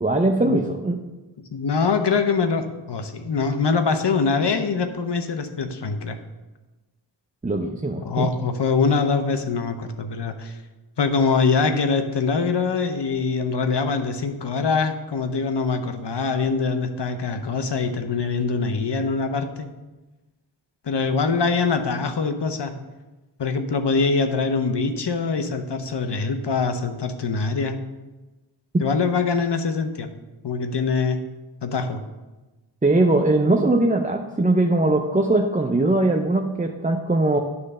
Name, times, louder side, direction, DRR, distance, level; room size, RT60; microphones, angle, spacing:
voice 1, 0.0-1.0 7.4-8.3 32.8-37.4, right 2 dB, 20° right, 3 dB, 0.5 m, -20 dB
voice 2, 1.5-6.2 8.0-10.6 11.0-19.7 20.8-22.7 23.4-27.8 28.8-30.1 30.4-31.2 31.6-32.0, left 4 dB, 60° left, 7 dB, 0.8 m, -23 dB
9.6 x 3.2 x 6.6 m, 1.1 s
wide cardioid pair, 55°, 46 cm